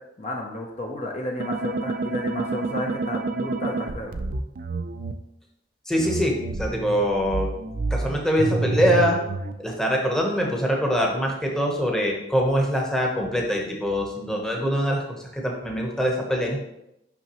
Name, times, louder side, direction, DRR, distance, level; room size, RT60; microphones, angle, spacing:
voice 1, 0.2-4.1, left 1 dB, 40° left, 0 dB, 0.6 m, -32 dB
sound 1, 1.4-5.1 6.0-9.5, right 3 dB, 50° right, 0.4 m, -28 dB
voice 2, 5.9-7.5 7.9-9.2 9.6-16.6, equal, 5° left, -1 dB, 0.9 m, -24 dB
5.7 x 5.7 x 3.0 m, 0.83 s
head